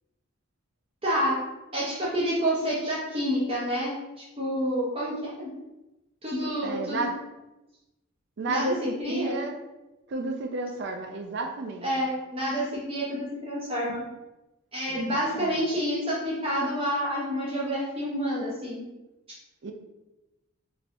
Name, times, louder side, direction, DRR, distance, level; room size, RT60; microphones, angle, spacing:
voice 1, 1.0-1.4 1.7-5.5 6.2-7.0 8.5-8.7 9.0-9.4 11.8-14.0 14.7-18.9, equal, 25° right, -7 dB, 0.7 m, -28 dB
voice 2, 6.6-7.2 8.4-9.6 10.1-11.9 14.9-15.6 19.6-19.7, right 3 dB, 55° right, 4 dB, 0.4 m, -32 dB
3.8 x 2.8 x 2.5 m, 1.0 s
head